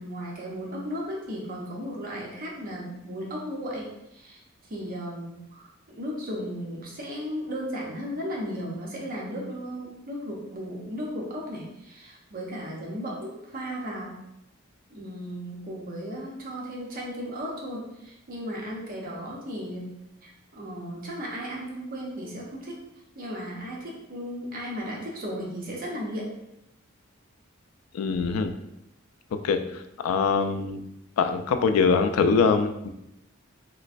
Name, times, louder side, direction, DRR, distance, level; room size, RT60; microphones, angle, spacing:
voice 1, 0.0-14.2 14.9-19.9 20.2-22.8 23.2-26.3, equal, 45° right, -2 dB, 0.7 m, -35 dB
voice 2, 27.9-28.5 29.4-30.8 31.2-32.9, left 5 dB, 85° left, 8 dB, 0.3 m, -23 dB
3.1 x 3.0 x 2.5 m, 0.84 s
head